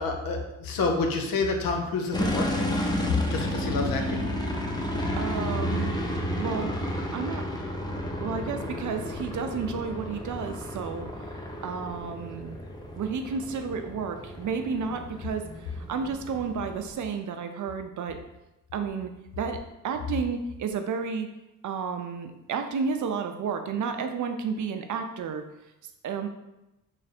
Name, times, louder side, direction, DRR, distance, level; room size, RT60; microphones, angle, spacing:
voice 1, 0.0-2.5 3.3-4.2, left 3 dB, 85° left, 3 dB, 0.7 m, -28 dB
sound 1, 2.1-16.9, left 1 dB, 15° left, 0.5 m, -32 dB
voice 2, 5.2-6.0 6.4-7.5 8.2-11.1 11.6-12.6 13.0-18.2 18.7-21.3 21.6-25.4 26.0-26.3, right 5 dB, 60° right, 7 dB, 0.5 m, -32 dB
3.2 x 2.6 x 4.2 m, 0.94 s
cardioid pair, 100°, 34 cm